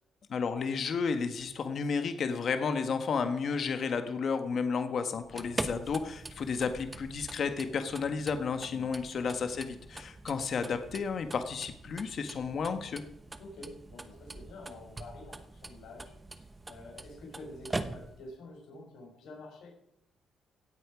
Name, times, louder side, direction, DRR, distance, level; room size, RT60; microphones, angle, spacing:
voice 1, 0.3-13.0, left 5 dB, 55° left, 8 dB, 1.5 m, -32 dB
sound 1, 5.2-18.4, right 2 dB, 20° right, 1.0 m, -43 dB
voice 2, 13.4-19.7, left 2 dB, 75° left, -1 dB, 4.8 m, -48 dB
16.5 x 8.3 x 5.1 m, 0.79 s
cardioid pair, 90°, 0 cm